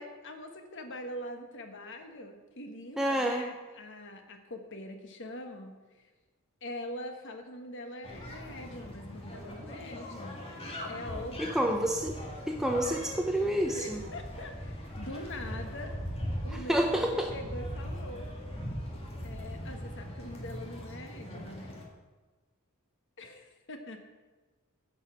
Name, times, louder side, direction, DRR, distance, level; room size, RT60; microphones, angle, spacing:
voice 1, 0.0-6.1 6.6-10.4 10.9-11.6 13.7-16.0 16.4-18.3 19.2-21.8 23.2-24.0, left 1 dB, 60° left, 5 dB, 1.4 m, -43 dB
voice 2, 3.0-3.4 11.4-12.2 12.5-14.0 16.7-17.3, right 1 dB, ahead, 1 dB, 0.6 m, -28 dB
sound 1, 8.0-21.8, equal, 25° left, 2.3 m, -40 dB
11.0 x 5.5 x 8.3 m, 1.2 s
head